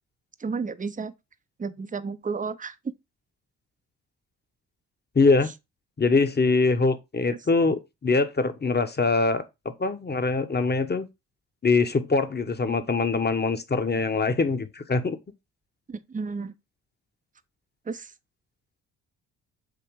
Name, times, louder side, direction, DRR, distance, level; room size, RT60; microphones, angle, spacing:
voice 1, 0.4-1.1 1.6-2.8 7.3-7.4 15.9-16.5 17.9-18.1, right 4 dB, 20° right, 0.8 m, -32 dB
voice 2, 5.1-5.5 6.0-9.4 9.8-11.1 11.6-15.2, left 3 dB, 25° left, 1.2 m, -23 dB
7.9 x 2.9 x 4.8 m
hypercardioid pair, 40°, 41 cm